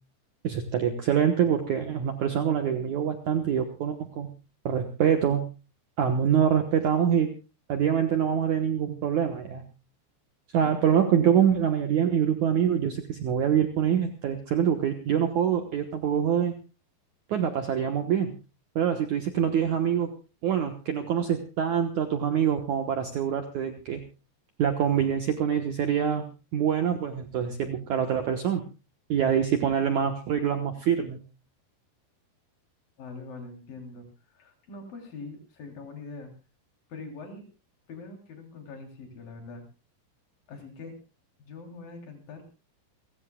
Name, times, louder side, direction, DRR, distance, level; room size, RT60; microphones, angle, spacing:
voice 1, 0.4-4.3 4.7-5.5 6.0-7.3 7.7-9.6 10.5-16.5 17.3-18.3 18.8-20.1 20.4-24.0 24.6-26.3 26.5-28.6 29.1-31.2, right 8 dB, 65° right, 6 dB, 2.0 m, -25 dB
voice 2, 33.0-36.3 36.9-37.5 37.9-39.6 40.5-40.9 41.4-42.5, left 3 dB, 55° left, 4 dB, 4.9 m, -43 dB
29.0 x 15.0 x 2.3 m, 0.31 s
omnidirectional pair, 5.0 m